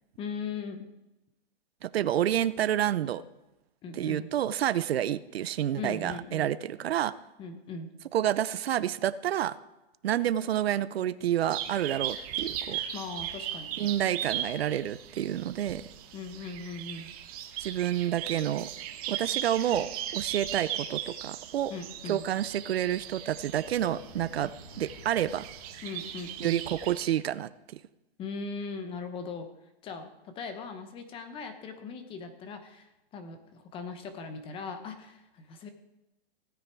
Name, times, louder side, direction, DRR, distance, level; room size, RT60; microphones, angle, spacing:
voice 1, 0.2-0.9 3.8-4.3 5.8-6.5 7.4-7.9 12.9-13.9 16.1-17.1 21.7-22.2 25.8-26.6 28.2-29.5 29.8-35.7, left 4 dB, 15° left, 8 dB, 0.9 m, -39 dB
voice 2, 1.8-3.2 3.9-7.1 8.1-9.6 10.0-12.8 13.8-15.8 17.6-18.7 19.1-21.7 22.1-24.5 24.8-25.5 26.4-27.8, right 11 dB, 70° right, 16 dB, 0.7 m, -29 dB
sound 1, 11.5-27.0, right 10 dB, 35° right, 1.2 m, -38 dB
sound 2, 23.7-27.1, left 3 dB, 45° left, 3.3 m, -52 dB
16.5 x 9.5 x 4.6 m, 0.98 s
hypercardioid pair, 155°, 31 cm